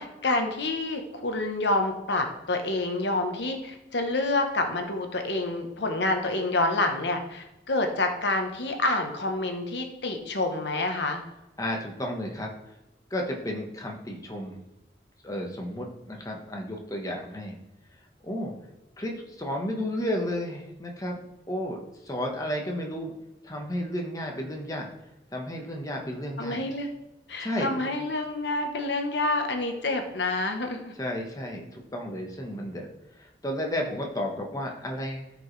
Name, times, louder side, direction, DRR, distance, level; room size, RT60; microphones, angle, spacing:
voice 1, 0.0-11.2 26.4-26.9 27.3-30.9, left 2 dB, 75° left, 5 dB, 1.1 m, -28 dB
voice 2, 11.6-12.5 13.1-14.6 15.2-17.6 18.2-18.5 19.0-21.2 21.5-23.1 23.4-24.9 25.3-26.6 27.4-27.9 31.0-32.9 33.2-35.3, left 1 dB, 20° left, 1 dB, 1.2 m, -32 dB
14.0 x 5.2 x 3.3 m, 0.98 s
head